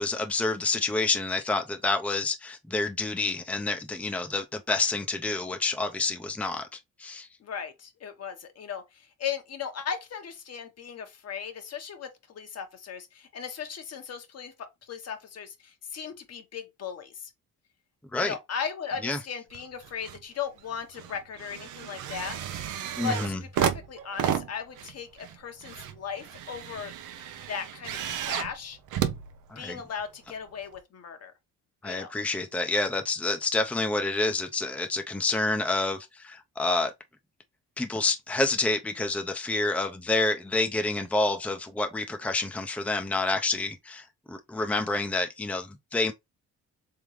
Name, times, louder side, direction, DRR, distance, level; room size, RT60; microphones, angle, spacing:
voice 1, 0.0-6.7 7.0-7.3 18.1-18.3 19.0-19.2 23.0-23.4 29.5-29.8 31.8-36.9 37.8-46.1, left 3 dB, 5° left, 0.6 m, -28 dB
voice 2, 7.4-17.3 18.2-22.4 23.0-26.9 27.5-28.8 29.6-31.3 31.8-32.1, left 7 dB, 55° left, 1.2 m, -37 dB
sound 1, 19.5-20.2 20.6-30.0 30.7-30.8, right 9 dB, 85° right, 0.7 m, -33 dB
3.6 x 3.6 x 3.2 m
cardioid pair, 90°, 30 cm